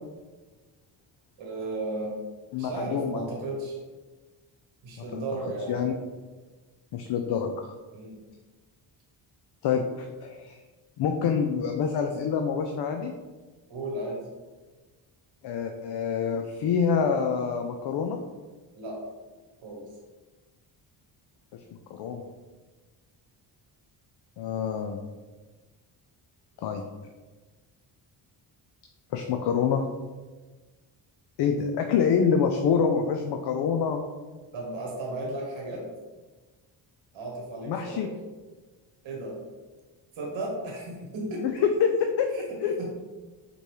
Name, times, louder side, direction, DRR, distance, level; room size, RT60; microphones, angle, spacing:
voice 1, 1.4-2.2 2.6-3.8 4.8-5.8 7.9-8.2 13.7-14.3 18.7-19.0 19.6-19.9 34.5-35.9 37.1-38.1 39.0-39.4 40.1-41.5 42.3-42.9, right 2 dB, 70° right, -2 dB, 1.2 m, -34 dB
voice 2, 2.5-3.2 5.1-5.2 5.7-5.9 6.9-7.7 9.6-10.5 11.0-13.1 15.4-18.2 21.9-22.2 24.4-25.0 26.6-26.8 29.1-29.8 31.4-34.0 37.7-38.1 41.4-42.3 42.6-42.9, left 6 dB, 60° left, 4 dB, 0.5 m, -26 dB
5.1 x 2.3 x 3.1 m, 1.3 s
cardioid pair, 70°, 48 cm